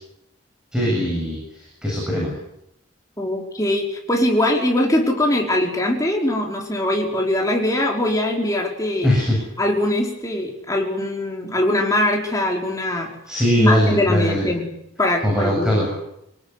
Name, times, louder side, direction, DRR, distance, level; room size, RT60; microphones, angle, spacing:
voice 1, 0.7-2.3 9.0-9.4 13.3-14.4 15.2-15.9, equal, 5° right, -3 dB, 8.0 m, -20 dB
voice 2, 3.2-9.1 9.6-13.1 13.5-14.7 15.0-15.9, left 1 dB, 15° left, 0 dB, 5.0 m, -22 dB
26.5 x 18.5 x 9.8 m, 0.80 s
head